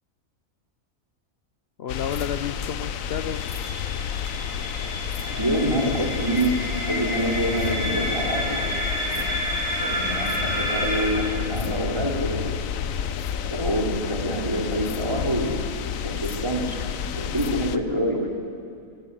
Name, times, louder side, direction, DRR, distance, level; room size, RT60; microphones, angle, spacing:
voice 1, 1.8-3.4 17.7-18.2, left 8 dB, 55° left, 8 dB, 0.9 m, -32 dB
sound 1, 1.9-17.8, left 8 dB, 80° left, 1.2 m, -30 dB
sound 2, 3.3-11.1, equal, 5° left, 7.0 m, -30 dB
voice 2, 5.3-6.5 6.8-8.6 8.9-9.3 9.8-12.4 13.5-15.5 16.0-16.8 17.1-18.2, right 1 dB, 20° right, -2 dB, 3.6 m, -26 dB
26.5 x 16.0 x 8.3 m, 2.5 s
omnidirectional pair, 1.4 m